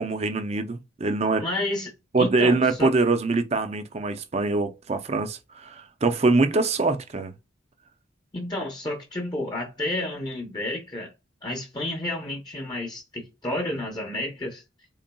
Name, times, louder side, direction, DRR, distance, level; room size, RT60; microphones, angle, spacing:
voice 1, 0.0-1.4 2.1-7.3, right 3 dB, 30° right, 0.5 m, -24 dB
voice 2, 1.4-1.9 2.2-2.9 8.3-11.1 11.4-14.6, left 1 dB, 20° left, 0.7 m, -31 dB
3.9 x 3.7 x 2.2 m
head